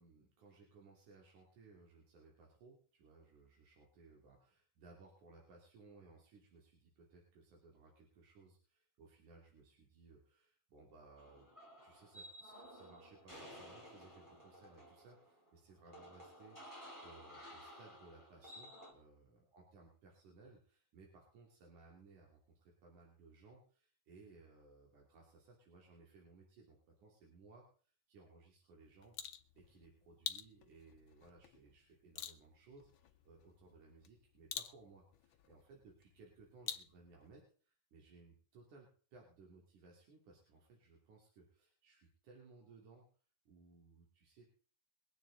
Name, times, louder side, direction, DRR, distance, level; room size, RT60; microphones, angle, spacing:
voice 1, 0.0-11.5 11.8-43.1 43.5-44.5, right 3 dB, 85° right, -1 dB, 4.3 m, -62 dB
sound 1, 11.2-18.9, equal, 5° right, 3.4 m, -55 dB
sound 2, 28.8-37.4, left 9 dB, 70° left, 1.2 m, -50 dB
23.0 x 9.5 x 4.0 m, 0.42 s
omnidirectional pair, 3.4 m